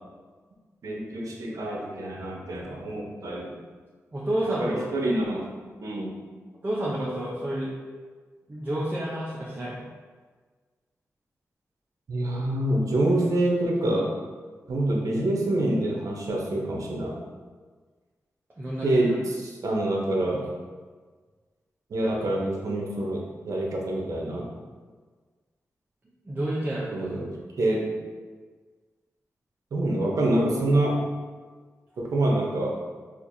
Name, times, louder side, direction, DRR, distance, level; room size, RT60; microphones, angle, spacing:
voice 1, 0.8-3.5 4.6-5.5 5.8-6.2 12.1-14.1 14.7-17.1 18.8-20.4 21.9-24.5 26.9-27.3 27.6-27.9 29.7-31.0 32.0-32.8, right 1 dB, 75° right, -1 dB, 0.7 m, -26 dB
voice 2, 4.1-4.8 6.6-7.7 8.5-9.9 18.6-19.0 26.3-27.1, right 1 dB, 30° right, -7 dB, 0.6 m, -29 dB
4.3 x 2.4 x 2.6 m, 1.5 s
cardioid pair, 75°, 6 cm